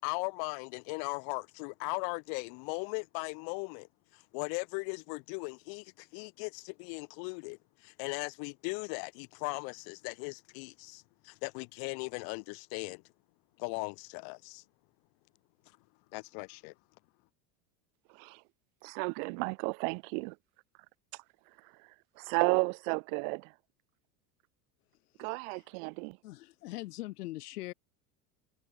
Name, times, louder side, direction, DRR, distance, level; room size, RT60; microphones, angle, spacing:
voice 1, 0.0-3.9 4.1-13.0 13.6-14.6 16.1-16.7, left 40 dB or more, 55° left, 0.8 m, -38 dB
voice 2, 18.8-20.4 22.2-23.5 25.2-26.2, right 38 dB, 60° right, 0.8 m, -32 dB
voice 3, 26.2-27.7, left 18 dB, 85° left, 1.6 m, -41 dB
supercardioid pair, 115°, 45 cm